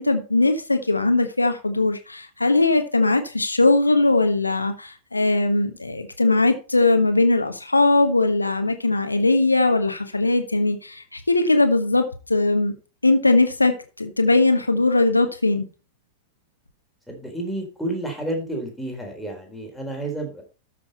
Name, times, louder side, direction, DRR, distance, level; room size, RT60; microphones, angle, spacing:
voice 1, 0.0-12.0 12.3-12.7 13.0-15.7, left 2 dB, 85° left, 1.3 m, -20 dB
voice 2, 17.1-20.4, right 1 dB, ahead, 4.0 m, -30 dB
13.0 x 6.2 x 4.3 m
figure-of-eight pair, 95°, 0 cm